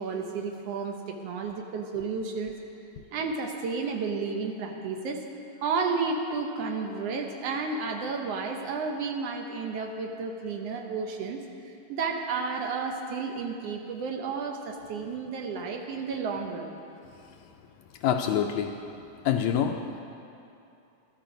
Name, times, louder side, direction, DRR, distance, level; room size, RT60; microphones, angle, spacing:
voice 1, 0.0-2.6 3.1-5.2 5.6-16.7, right 4 dB, 70° right, 3 dB, 1.5 m, -32 dB
voice 2, 17.1-17.5 17.9-18.9 19.2-20.0, left 8 dB, 85° left, 4 dB, 1.6 m, -28 dB
13.5 x 12.5 x 5.1 m, 2.7 s
omnidirectional pair, 3.7 m